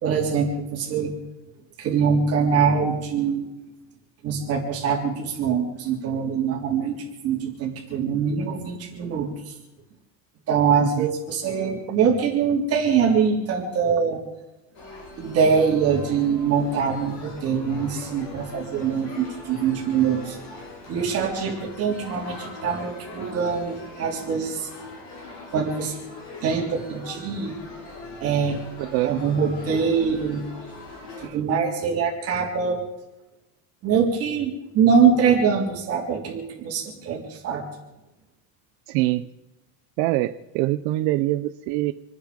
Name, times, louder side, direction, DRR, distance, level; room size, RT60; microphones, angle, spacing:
voice 1, 0.0-1.1 1.8-3.4 4.2-9.6 10.5-14.2 15.2-20.4 20.9-24.7 25.5-26.1 26.4-27.6 28.2-28.6 29.0-30.4 31.2-32.8 33.8-37.7, right 6 dB, 35° right, -1 dB, 3.6 m, -23 dB
sound 1, 14.7-31.3, left 3 dB, 45° left, 6.6 m, -41 dB
voice 2, 28.8-29.1 31.1-31.4 38.9-39.3 40.0-41.9, right 17 dB, 60° right, 9 dB, 0.7 m, -24 dB
27.5 x 9.8 x 5.3 m, 0.97 s
cardioid pair, 165°, 39 cm